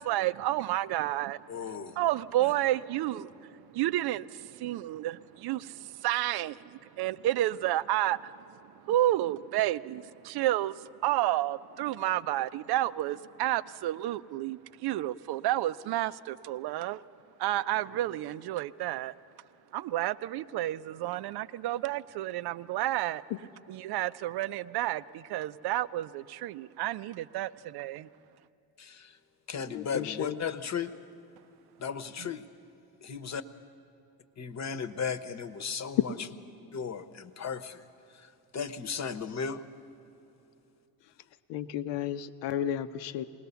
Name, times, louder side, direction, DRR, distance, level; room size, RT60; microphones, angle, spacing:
voice 1, 0.0-1.4 2.0-8.4 8.9-17.0 17.4-19.1 19.7-23.2 23.7-28.1, right 14 dB, 55° right, 15 dB, 0.6 m, -30 dB
voice 2, 1.5-2.0 2.4-2.5 28.8-29.2 29.5-30.9 31.8-32.4 33.0-33.4 34.4-36.3 36.7-37.8 38.1-39.6, left 6 dB, 35° left, 11 dB, 1.1 m, -36 dB
voice 3, 29.7-30.3 41.5-43.2, left 10 dB, 65° left, 11 dB, 0.9 m, -33 dB
20.0 x 19.0 x 7.0 m, 2.8 s
hypercardioid pair, 65°, 47 cm